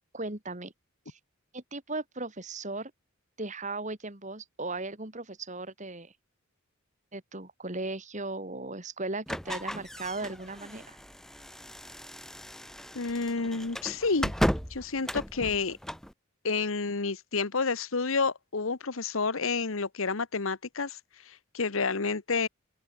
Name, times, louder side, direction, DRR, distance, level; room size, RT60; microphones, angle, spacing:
voice 1, 0.1-0.7 1.1-1.2 1.5-2.9 3.4-6.1 7.1-11.0, right 2 dB, 35° right, 3.0 m, -37 dB
sound 1, 9.3-16.1, equal, ahead, 1.5 m, -35 dB
voice 2, 12.9-14.3 14.7-15.8 16.4-21.0 21.3-22.5, left 4 dB, 75° left, 1.2 m, -29 dB
head